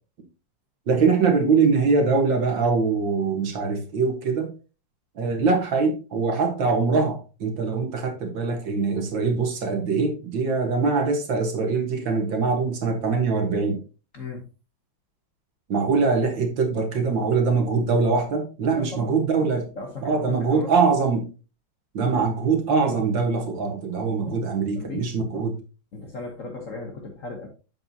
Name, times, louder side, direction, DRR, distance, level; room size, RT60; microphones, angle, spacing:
voice 1, 0.9-4.5 5.2-13.8 15.7-19.7 20.0-21.3 21.9-25.6, right 4 dB, 60° right, 2.1 m, -23 dB
voice 2, 14.1-14.5 18.8-19.2 19.7-20.7 24.0-24.4 24.8-25.5 25.9-27.5, left 3 dB, 45° left, 1.1 m, -37 dB
7.6 x 7.5 x 2.8 m
omnidirectional pair, 2.4 m